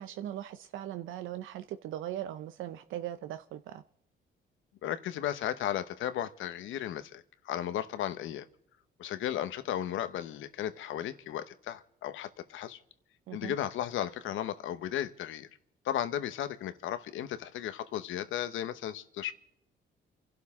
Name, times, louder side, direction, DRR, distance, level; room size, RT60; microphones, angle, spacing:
voice 1, 0.0-3.8 13.3-13.5, right 12 dB, 85° right, 0.6 m, -39 dB
voice 2, 4.8-8.5 9.0-12.8 13.3-15.5 15.8-19.3, left 11 dB, 80° left, 1.0 m, -35 dB
29.0 x 12.0 x 3.6 m
cardioid pair, 90°, 20 cm